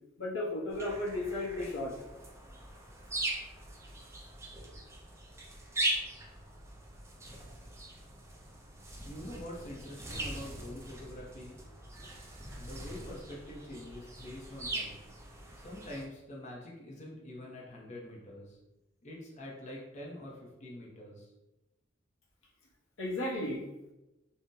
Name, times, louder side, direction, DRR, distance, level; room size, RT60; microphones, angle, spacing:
voice 1, 0.2-1.9 23.0-23.6, left 1 dB, 70° left, -3 dB, 0.8 m, -34 dB
sound 1, 0.7-16.0, right 1 dB, 15° right, 0.4 m, -41 dB
voice 2, 9.0-11.6 12.6-14.9 15.6-18.6 19.0-21.3, left 1 dB, 35° left, -3 dB, 0.6 m, -45 dB
2.6 x 2.1 x 3.6 m, 1.0 s
head